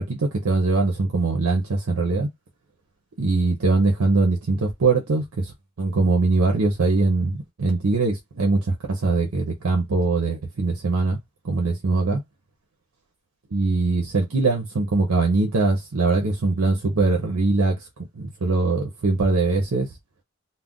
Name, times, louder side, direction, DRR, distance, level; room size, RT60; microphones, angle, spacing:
voice 1, 0.0-2.3 3.2-11.2 11.4-12.2 13.5-17.9 18.1-19.9, right 3 dB, 75° right, 0.6 m, -22 dB
2.4 x 2.1 x 3.5 m
head